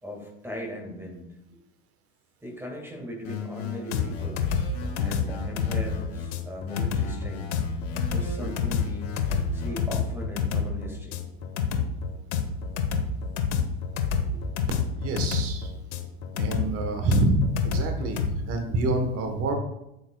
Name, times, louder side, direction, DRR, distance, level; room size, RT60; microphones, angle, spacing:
voice 1, 0.0-1.6 2.4-4.4 5.0-7.5 8.1-9.1 9.5-11.2 14.3-14.4, equal, 5° right, 0 dB, 1.8 m, -39 dB
sound 1, 3.2-6.3 6.7-9.7, left 5 dB, 45° left, 2.6 m, -37 dB
sound 2, 3.9-18.3, left 7 dB, 75° left, 1.0 m, -28 dB
voice 2, 15.0-15.7 16.3-19.5, right 2 dB, 40° right, 5 dB, 1.2 m, -26 dB
8.0 x 7.0 x 2.3 m, 0.86 s
hypercardioid pair, 100°, 36 cm